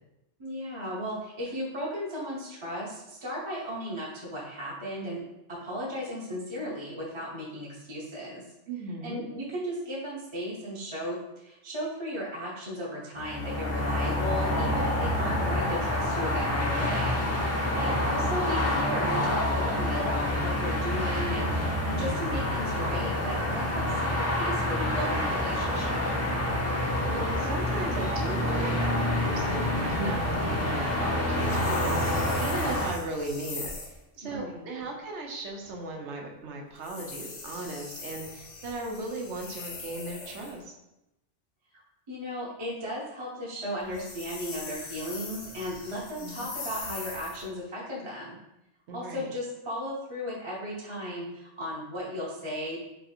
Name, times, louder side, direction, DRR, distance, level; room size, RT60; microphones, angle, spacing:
voice 1, 0.4-5.2 5.5-8.4 9.0-17.2 17.7-26.0 34.2-34.7 41.7-41.8 42.1-48.4 48.9-52.8, equal, 30° right, -5 dB, 0.7 m, -35 dB
voice 2, 8.7-9.2 15.2-15.5 17.8-18.0 27.0-33.7 34.2-40.7 46.2-46.5 48.9-49.3, right 2 dB, 75° right, 1 dB, 1.0 m, -37 dB
sound 1, 13.2-32.9, left 1 dB, 20° left, 0.5 m, -27 dB
sound 2, 31.3-34.0 36.8-40.6 43.8-47.5, left 4 dB, 55° left, 0.8 m, -41 dB
3.2 x 2.5 x 4.2 m, 0.92 s
omnidirectional pair, 1.2 m